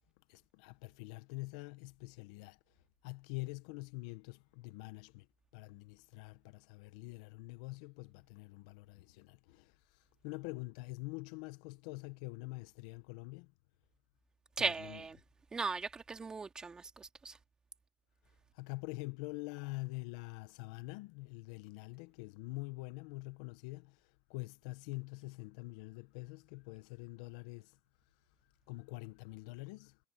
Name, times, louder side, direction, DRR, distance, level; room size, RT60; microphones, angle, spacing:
voice 1, 0.3-2.6 3.0-5.3 5.5-9.7 10.2-13.5 14.6-15.0 18.5-24.0 24.3-27.8 28.7-30.0, left 23 dB, 70° left, 1.5 m, -45 dB
voice 2, 14.6-15.2 15.5-17.4, right 4 dB, 20° right, 2.8 m, -38 dB
supercardioid pair, 100°, 4 cm